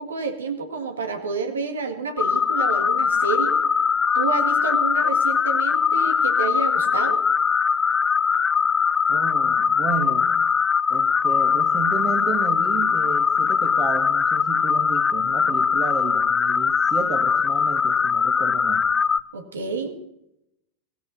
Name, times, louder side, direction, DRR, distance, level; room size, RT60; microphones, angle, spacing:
voice 1, 0.0-3.6 4.1-7.2 19.3-20.0, right 4 dB, 75° right, 6 dB, 2.0 m, -29 dB
sound 1, 2.2-19.2, left 6 dB, 20° left, 0.4 m, -21 dB
voice 2, 9.1-10.3 10.9-18.9, right 6 dB, 35° right, 2 dB, 2.0 m, -32 dB
16.5 x 16.5 x 4.2 m, 0.81 s
figure-of-eight pair, 85°, 0 cm